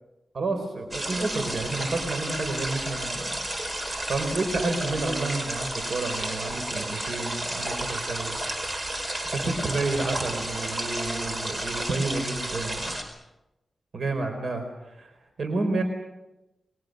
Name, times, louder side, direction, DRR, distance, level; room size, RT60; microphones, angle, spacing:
voice 1, 0.3-8.4 9.3-13.0 13.9-15.8, right 3 dB, 65° right, 6 dB, 4.2 m, -30 dB
sound 1, 0.9-13.0, right 1 dB, 30° right, 4.6 m, -32 dB
29.5 x 22.0 x 6.6 m, 0.97 s
wide cardioid pair, 110°, 0 cm